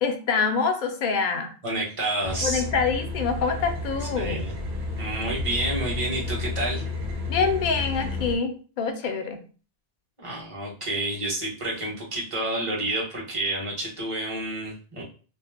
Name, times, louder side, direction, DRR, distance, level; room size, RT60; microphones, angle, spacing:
voice 1, 0.0-1.5 2.4-4.5 7.3-9.4, left 5 dB, 60° left, 6 dB, 0.6 m, -26 dB
voice 2, 1.6-2.6 4.2-4.5 5.0-6.9 10.2-15.0, right 1 dB, 35° right, -4 dB, 1.0 m, -29 dB
sound 1, 2.2-8.4, left 3 dB, 70° right, 0.9 m, -31 dB
2.5 x 2.1 x 3.4 m, 0.37 s
omnidirectional pair, 1.0 m